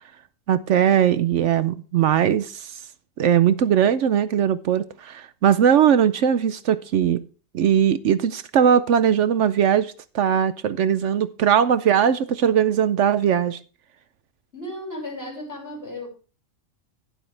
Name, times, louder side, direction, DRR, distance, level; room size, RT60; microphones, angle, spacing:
voice 1, 0.5-2.7 3.2-7.2 7.5-13.6, right 9 dB, 70° right, 0.9 m, -20 dB
voice 2, 14.5-16.1, left 1 dB, 50° left, 6.0 m, -34 dB
12.0 x 10.5 x 3.3 m
omnidirectional pair, 1.3 m